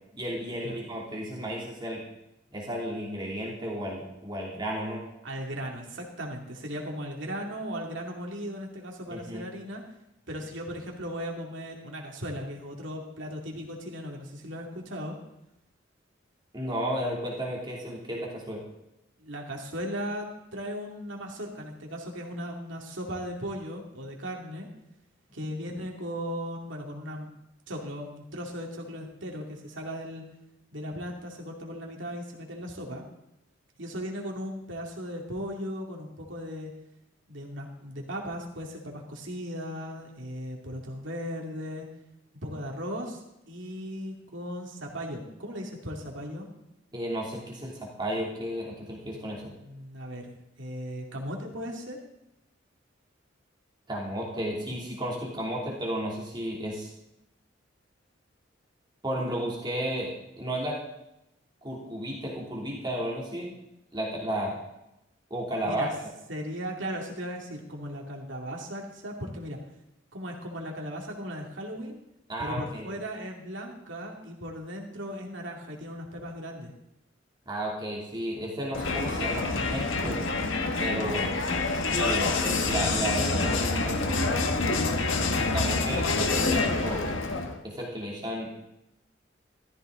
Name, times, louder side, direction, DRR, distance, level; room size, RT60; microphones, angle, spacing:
voice 1, 0.2-2.0 2.5-5.0 9.1-9.4 16.5-18.6 46.9-49.5 53.9-56.9 59.0-60.8 61.6-63.5 63.9-64.6 65.3-66.1 72.3-72.9 77.5-80.2 80.8-81.4 81.9-84.3 85.4-87.0 87.6-88.5, equal, 25° right, -3 dB, 2.9 m, -33 dB
voice 2, 5.2-9.8 10.3-15.2 19.2-24.7 25.3-27.3 27.7-30.2 30.7-33.0 33.8-36.7 37.3-41.9 42.4-43.2 43.5-46.5 49.1-52.0 65.6-65.9 66.3-69.6 70.1-72.0 72.4-76.7 85.4-86.0, equal, 75° right, 0 dB, 2.7 m, -37 dB
Crowd, 78.7-87.6, left 3 dB, 90° left, 1.5 m, -27 dB
14.0 x 14.0 x 3.9 m, 0.87 s
head